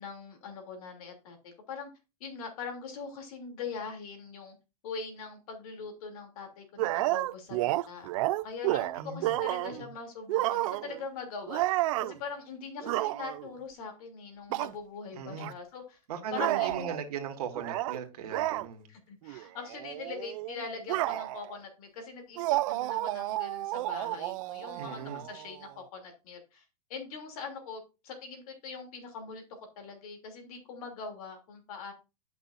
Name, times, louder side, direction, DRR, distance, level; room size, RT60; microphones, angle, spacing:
voice 1, 0.0-1.9 2.2-4.5 4.8-8.1 8.4-16.0 16.3-16.9 18.9-29.4 29.8-31.9, left 5 dB, 65° left, 2.9 m, -42 dB
sound 1, 6.8-9.8 10.3-11.0 11.5-12.2 12.8-13.5 14.5-14.7 15.4-15.5 16.3-17.0 17.5-18.0 18.3-18.7 19.2-19.4 19.7-21.5 22.4-25.7, right 17 dB, 60° right, 0.4 m, -31 dB
voice 2, 9.0-9.4 9.7-9.9 15.1-15.5 16.1-18.9 24.7-25.3, right 7 dB, 80° right, 1.7 m, -38 dB
11.0 x 6.0 x 2.5 m
supercardioid pair, 140°, 20 cm